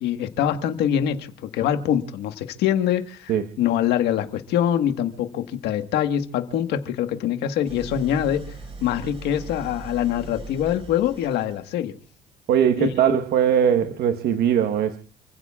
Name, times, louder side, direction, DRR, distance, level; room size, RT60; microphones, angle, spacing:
voice 1, 0.0-8.5 8.8-11.9 12.8-13.2, left 10 dB, 80° left, 1.6 m, -24 dB
Idling, 7.7-11.9, right 3 dB, 35° right, 5.7 m, -40 dB
voice 2, 12.5-15.0, right 9 dB, 70° right, 1.3 m, -20 dB
29.5 x 16.0 x 2.4 m
cardioid pair, 110°, 17 cm